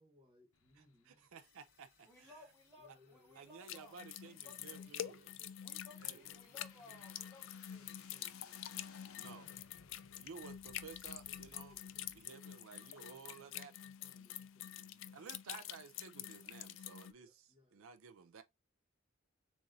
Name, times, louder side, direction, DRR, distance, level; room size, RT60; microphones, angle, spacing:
voice 1, 0.0-1.3 2.8-3.4 4.5-5.5 6.2-7.0 7.7-9.0 11.2-12.4 12.8-15.3 17.1-17.8, left 1 dB, 25° right, 1.2 m, -68 dB
sound 1, 0.5-12.2, left 6 dB, 85° left, 0.7 m, -64 dB
voice 2, 1.1-2.3 3.4-5.3 6.0-6.2 9.2-9.5 10.2-11.7 12.1-13.7 15.1-17.3 17.7-18.4, right 6 dB, 70° right, 0.5 m, -54 dB
sound 2, 1.4-10.6, left 5 dB, 45° left, 1.1 m, -75 dB
voice 3, 2.1-4.0 4.2-4.9 5.6-7.9, left 1 dB, 15° left, 2.6 m, -60 dB
sound 3, 3.7-17.1, left 11 dB, 60° left, 0.3 m, -47 dB
7.1 x 2.6 x 2.7 m
head